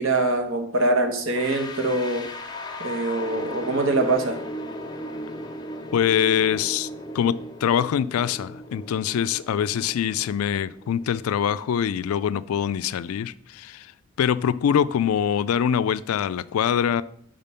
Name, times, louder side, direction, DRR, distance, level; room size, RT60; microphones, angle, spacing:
voice 1, 0.0-2.3 2.8-4.4, right 2 dB, 65° right, 5 dB, 1.1 m, -23 dB
sound 1, 1.3-12.2, left 1 dB, 20° left, 0.6 m, -37 dB
voice 2, 5.9-6.9 7.1-13.9 14.2-17.0, left 8 dB, 85° left, 17 dB, 0.3 m, -24 dB
5.6 x 5.2 x 5.5 m, 0.66 s
head